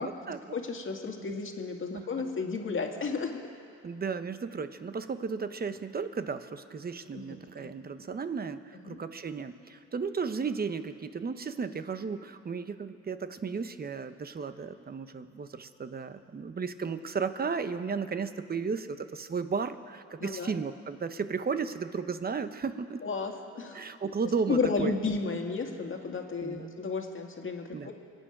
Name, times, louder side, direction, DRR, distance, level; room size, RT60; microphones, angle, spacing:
voice 1, 0.0-0.4 1.9-2.1 3.8-23.0 23.7-24.9 26.4-26.8 27.7-27.9, right 5 dB, 30° right, 11 dB, 0.9 m, -34 dB
voice 2, 0.5-3.5 7.1-7.7 8.8-9.0 20.2-20.5 23.0-23.8 24.5-27.9, left 4 dB, 40° left, 3 dB, 2.0 m, -33 dB
26.0 x 9.1 x 5.9 m, 2.3 s
cardioid pair, 90°, 30 cm